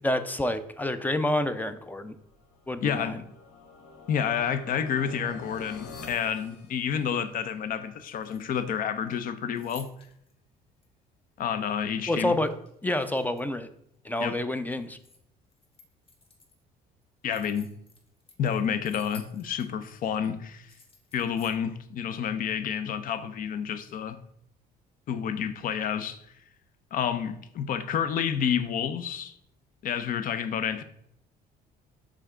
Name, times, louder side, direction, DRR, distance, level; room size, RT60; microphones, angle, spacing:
voice 1, 0.0-2.2 2.7-3.2 12.1-12.5 12.8-13.7 14.0-15.0, left 1 dB, 10° left, 0.4 m, -28 dB
sound 1, 2.2-7.4, left 3 dB, 85° left, 1.0 m, -47 dB
voice 2, 2.8-3.2 4.1-9.9 11.4-12.4 14.2-14.4 17.2-17.7 18.4-20.7 21.1-24.2 25.1-26.2 26.9-29.3 29.8-30.8, left 8 dB, 55° left, 0.6 m, -29 dB
sound 2, 5.4-6.1 8.0-8.8 9.1-10.3 10.8-10.9 12.3-13.6 13.9-15.2 15.5-16.6 17.0-19.9 20.2-20.3 20.6-21.6, left 4 dB, 35° left, 1.4 m, -54 dB
5.7 x 3.7 x 4.9 m
cardioid pair, 110°, 17 cm